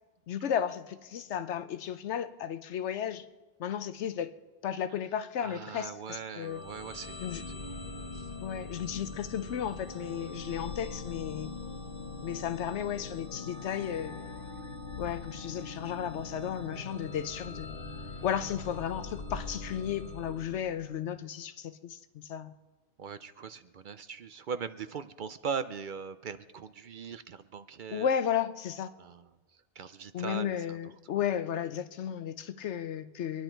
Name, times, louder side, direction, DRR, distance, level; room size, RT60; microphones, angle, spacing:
voice 1, 0.3-3.3 3.6-4.3 4.6-6.6 7.2-7.4 8.4-11.5 12.2-14.2 15.0-17.8 18.2-22.5 27.9-28.9 30.1-33.4, left 9 dB, 90° left, 1.0 m, -34 dB
voice 2, 5.4-7.3 8.1-8.3 23.0-28.1 29.0-29.2 29.8-30.8, right 6 dB, 55° right, 0.6 m, -40 dB
sound 1, 6.4-21.1, left 3 dB, 50° left, 1.4 m, -42 dB
23.5 x 10.5 x 4.5 m
omnidirectional pair, 1.1 m